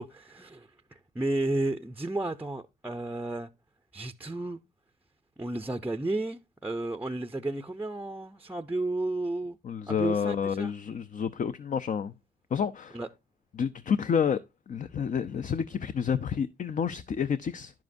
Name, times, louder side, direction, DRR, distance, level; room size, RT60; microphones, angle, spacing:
voice 1, 0.0-3.5 3.9-4.6 5.4-9.6 9.9-10.7 12.9-13.1, right 2 dB, 10° right, 0.6 m, -32 dB
voice 2, 9.6-12.1 12.5-13.0 13.5-14.4 14.7-17.7, left 7 dB, 40° left, 0.6 m, -29 dB
10.5 x 7.5 x 2.6 m
cardioid pair, 90°, 20 cm